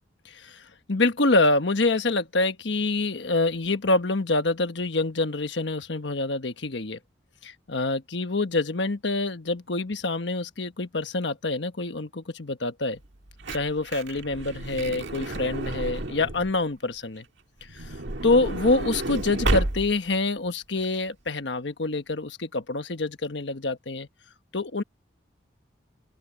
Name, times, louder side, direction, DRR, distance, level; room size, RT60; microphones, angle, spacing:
voice 1, 0.2-7.0 7.4-13.0 13.5-17.2 17.7-18.0 18.2-24.1 24.5-24.8, left 2 dB, 70° left, 1.3 m, -26 dB
Truck / Door, 13.1-16.6 17.6-20.2 20.8-20.9 21.1-21.3, right 2 dB, 75° right, 1.8 m, -31 dB
open air
head